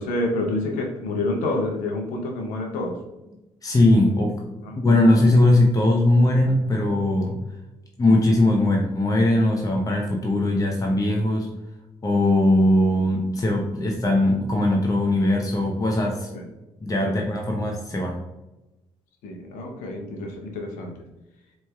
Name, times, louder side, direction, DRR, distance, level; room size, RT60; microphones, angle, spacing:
voice 1, 0.0-3.0 4.6-4.8 16.3-16.5 17.0-17.2 19.2-20.9, left 2 dB, 85° left, 2 dB, 0.6 m, -28 dB
voice 2, 3.6-4.4 4.8-7.4 8.0-11.5 12.0-16.3 16.8-18.2, left 1 dB, 25° left, 0 dB, 0.7 m, -20 dB
4.3 x 3.0 x 2.3 m, 0.99 s
supercardioid pair, 55°, 13 cm